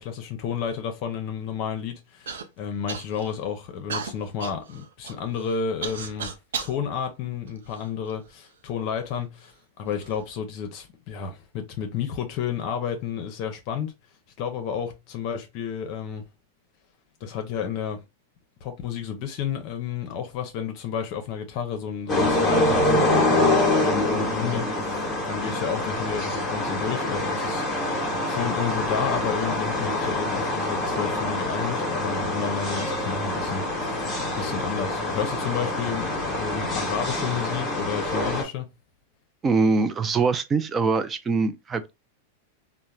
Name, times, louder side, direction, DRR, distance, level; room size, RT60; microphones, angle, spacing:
voice 1, 0.0-6.3 6.6-13.9 14.4-16.2 17.2-18.0 18.6-23.6 23.8-27.6 28.3-34.1 34.4-38.7, left 7 dB, 50° left, 0.6 m, -31 dB
Human voice / Cough, 2.3-2.4 2.9-3.4 3.9-6.8 7.5-8.3 9.1-9.2 9.9-10.2, right 6 dB, 85° right, 0.5 m, -35 dB
sound 1, 22.1-38.4, left 2 dB, 15° left, 1.0 m, -25 dB
voice 2, 39.4-41.9, right 4 dB, 20° right, 0.4 m, -23 dB
2.9 x 2.0 x 2.3 m
hypercardioid pair, 125°, 0 cm